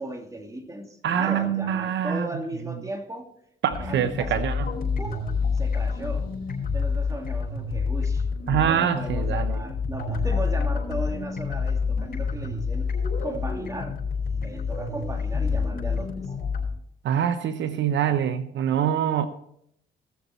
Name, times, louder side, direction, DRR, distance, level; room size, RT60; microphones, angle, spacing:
voice 1, 0.0-3.3 3.8-4.6 5.0-5.2 5.5-6.3 6.7-12.9 13.2-14.0 14.3-16.3, right 1 dB, 15° right, 4 dB, 2.4 m, -36 dB
voice 2, 1.0-2.3 3.6-4.7 8.5-9.6 17.0-19.3, right 9 dB, 70° right, 10 dB, 0.8 m, -24 dB
sound 1, 3.7-16.7, left 5 dB, 50° left, 5.3 m, -28 dB
19.0 x 7.0 x 4.4 m, 0.71 s
cardioid pair, 90°, 20 cm